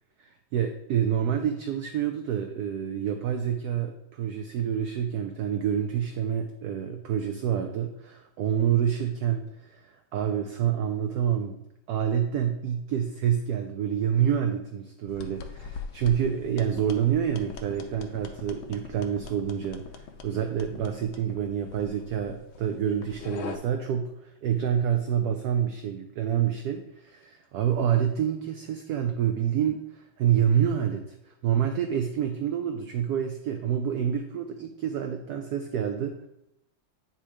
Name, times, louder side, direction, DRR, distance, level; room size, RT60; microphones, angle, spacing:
voice 1, 0.2-11.6 11.9-24.1 24.4-36.3, right 9 dB, 70° right, 5 dB, 1.0 m, -27 dB
sound 1, 15.1-23.6, left 6 dB, 85° left, 1.5 m, -42 dB
8.9 x 3.2 x 4.9 m, 0.81 s
omnidirectional pair, 2.1 m